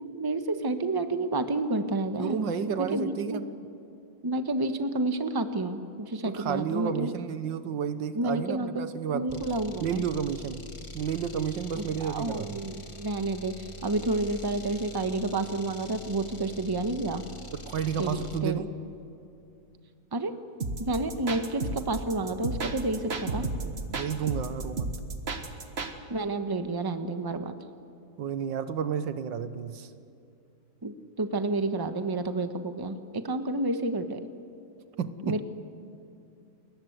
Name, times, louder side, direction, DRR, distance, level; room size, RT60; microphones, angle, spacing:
voice 1, 0.1-2.4 2.9-3.4 4.2-7.1 8.1-8.9 9.1-10.0 11.8-17.2 18.0-18.6 20.1-20.4 20.8-23.5 26.1-27.5 30.8-34.3 35.2-35.4, right 2 dB, 15° right, 8 dB, 1.0 m, -30 dB
voice 2, 2.2-3.5 6.3-9.5 9.8-10.6 10.9-12.6 17.5-18.7 22.6-22.8 23.3-24.9 28.2-29.9 35.0-35.4, right 7 dB, 90° right, 11 dB, 1.8 m, -32 dB
sound 1, 9.3-18.5, equal, 20° left, 1.3 m, -44 dB
sound 2, 20.6-25.9, right 3 dB, 35° right, 1.7 m, -33 dB
30.0 x 22.0 x 8.0 m, 2.6 s
omnidirectional pair, 2.0 m